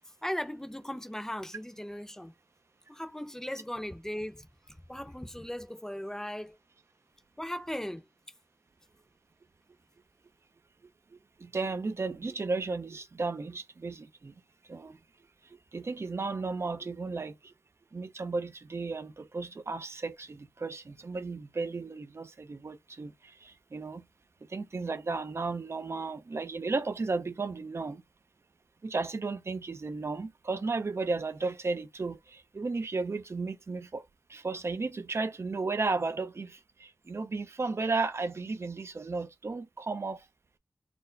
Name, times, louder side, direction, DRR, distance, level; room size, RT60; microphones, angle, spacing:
voice 1, 0.2-2.3 2.9-4.5 4.9-6.6 7.4-8.0, equal, 10° left, 0.7 m, -37 dB
voice 2, 11.1-14.3 14.7-15.0 15.4-17.5 17.9-24.1 24.4-28.0 28.8-34.0 34.3-40.3, right 3 dB, 45° right, 0.6 m, -34 dB
4.4 x 2.0 x 3.8 m
wide cardioid pair, 110°, 7 cm